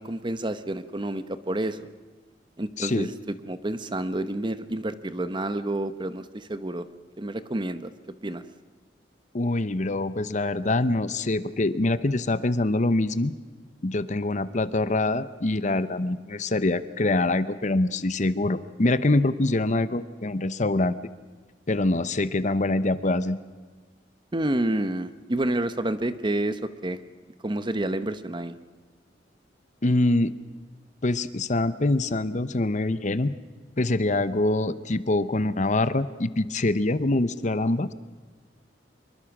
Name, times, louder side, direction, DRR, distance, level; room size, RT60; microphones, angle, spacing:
voice 1, 0.0-1.9 2.6-3.1 3.5-6.9 7.2-7.9 8.2-8.4 24.3-27.0 27.4-28.5, right 1 dB, 25° right, 12 dB, 0.9 m, -29 dB
voice 2, 2.8-3.1 9.3-13.3 13.8-20.9 21.7-23.4 29.8-30.3 31.0-33.3 33.8-37.9, left 2 dB, 40° left, 13 dB, 0.8 m, -24 dB
25.0 x 22.5 x 6.1 m, 1.4 s
head